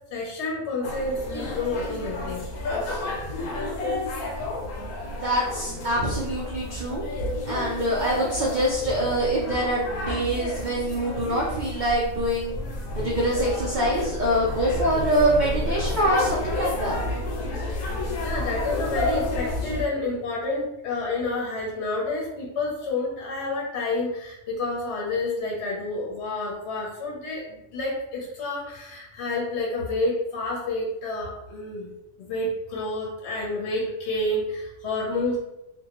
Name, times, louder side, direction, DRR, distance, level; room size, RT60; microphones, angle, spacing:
voice 1, 0.1-2.4 18.2-31.9 32.2-35.4, left 2 dB, 60° left, -3 dB, 0.9 m, -29 dB
sound 1, 0.8-19.8, left 2 dB, 85° left, 1.1 m, -31 dB
voice 2, 5.1-7.0 7.5-12.5 13.0-17.0, right 1 dB, 85° right, -4 dB, 0.4 m, -25 dB
2.6 x 2.2 x 2.8 m, 0.90 s
omnidirectional pair, 1.5 m